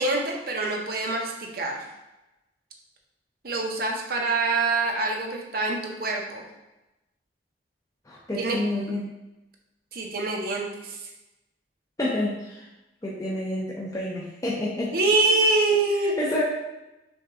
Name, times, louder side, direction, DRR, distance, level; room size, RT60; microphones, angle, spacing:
voice 1, 0.0-1.8 3.4-6.4 8.4-8.6 9.9-11.0 14.9-16.2, right 3 dB, 60° right, 1 dB, 0.8 m, -25 dB
voice 2, 8.1-9.0 12.0-12.7 13.0-14.9 16.0-16.4, left 1 dB, 20° left, -5 dB, 0.6 m, -29 dB
6.2 x 2.4 x 3.5 m, 0.98 s
head